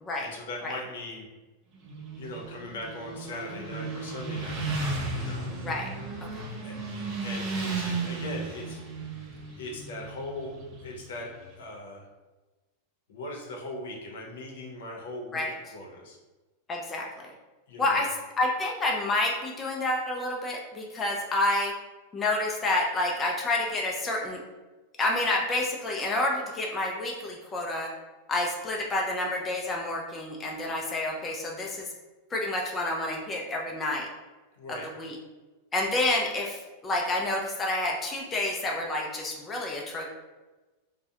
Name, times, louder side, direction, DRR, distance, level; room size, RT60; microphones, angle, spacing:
voice 1, 0.2-1.3 2.2-4.6 5.1-5.5 6.6-8.8 9.6-10.6 10.8-12.1 13.1-15.4 15.7-16.2 17.7-18.1 34.5-34.9, left 2 dB, 80° left, 0 dB, 0.6 m, -39 dB
Motorcycle, 1.8-11.5, right 3 dB, 35° right, 0.6 m, -35 dB
voice 2, 16.7-17.3 17.8-21.7 22.1-24.4 25.0-27.9 28.3-31.9 32.3-34.1 34.7-35.2 35.7-40.1, left 2 dB, 15° left, -1 dB, 0.3 m, -29 dB
2.3 x 2.1 x 2.7 m, 1.2 s
supercardioid pair, 145°, 0 cm